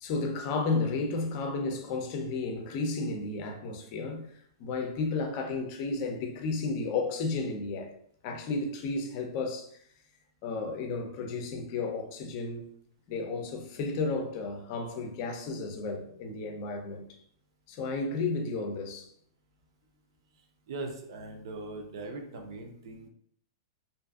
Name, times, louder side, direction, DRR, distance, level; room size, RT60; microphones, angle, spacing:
voice 1, 0.0-7.9 8.2-9.8 10.4-12.7 13.1-17.1 17.7-19.1, left 3 dB, 40° left, 0.5 m, -33 dB
voice 2, 20.7-23.1, right 3 dB, 65° right, 0.6 m, -40 dB
2.5 x 2.4 x 2.4 m
hypercardioid pair, 145°, 3 cm